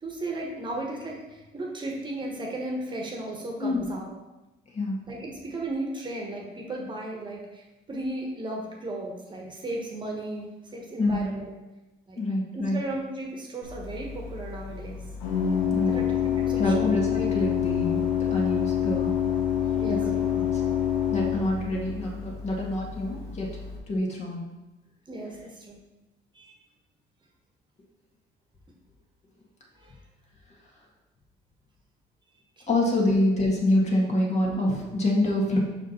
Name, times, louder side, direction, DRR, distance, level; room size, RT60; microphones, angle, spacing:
voice 1, 0.0-4.1 5.1-11.5 12.1-12.2 12.5-15.0 15.9-16.9 19.7-20.3 25.1-25.8 26.3-26.5 29.8-29.9 32.7-32.9, right 1 dB, 25° right, 0 dB, 1.2 m, -35 dB
voice 2, 12.2-12.8 15.7-16.0 16.6-18.0 18.3-19.1 19.8-20.0 21.1-23.6 23.9-24.4 32.7-35.6, left 1 dB, 40° left, -2 dB, 1.7 m, -26 dB
Organ, 13.6-23.8, left 9 dB, 75° left, 1.4 m, -27 dB
5.6 x 5.0 x 4.4 m, 1.0 s
cardioid pair, 110°, 17 cm